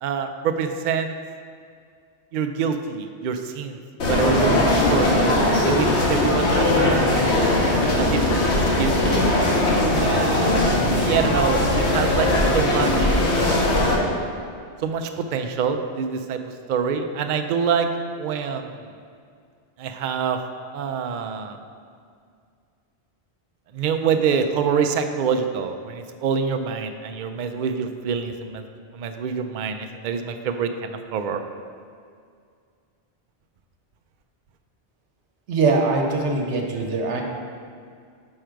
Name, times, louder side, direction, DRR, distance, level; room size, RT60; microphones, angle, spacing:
voice 1, 0.0-1.1 2.3-3.8 4.1-5.4 5.6-7.4 8.0-8.5 8.8-9.1 9.9-12.3 12.5-13.2 14.8-17.9 18.2-18.8 19.8-20.4 20.7-21.6 23.7-28.6 28.9-31.4, right 6 dB, 60° right, 6 dB, 0.5 m, -26 dB
sound 1, 4.0-13.9, left 1 dB, 75° left, 1.3 m, -20 dB
voice 2, 35.5-37.2, right 3 dB, 85° right, 1 dB, 1.1 m, -22 dB
6.4 x 5.0 x 4.5 m, 2.2 s
omnidirectional pair, 1.2 m